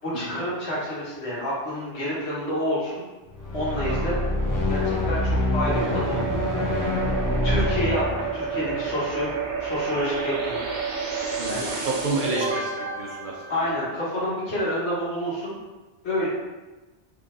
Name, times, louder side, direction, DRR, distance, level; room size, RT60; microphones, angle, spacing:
voice 1, 0.0-3.0 3.5-4.2 4.7-6.4 7.4-9.3 9.6-10.6 11.5-11.7 13.5-15.5 16.0-16.3, left 1 dB, 80° left, -8 dB, 1.5 m, -28 dB
sound 1, 3.3-9.6, left 1 dB, 30° left, 0.4 m, -26 dB
sound 2, 5.6-14.3, right 5 dB, 80° right, 0.9 m, -30 dB
voice 2, 11.4-13.3, right 3 dB, 60° right, -2 dB, 0.6 m, -30 dB
3.6 x 3.2 x 2.5 m, 1.2 s
omnidirectional pair, 1.1 m